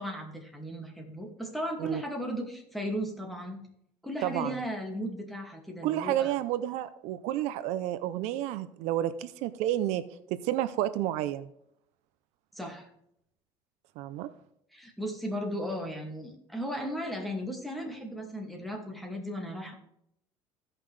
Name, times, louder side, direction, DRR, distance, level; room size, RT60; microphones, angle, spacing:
voice 1, 0.0-3.6 4.0-6.3 12.5-12.9 14.7-19.7, equal, ahead, 1 dB, 2.2 m, -36 dB
voice 2, 4.2-4.6 5.8-10.0 10.3-11.5 14.0-14.3, right 13 dB, 75° right, 13 dB, 0.6 m, -30 dB
16.0 x 5.8 x 3.3 m, 0.74 s
cardioid pair, 125°, 11 cm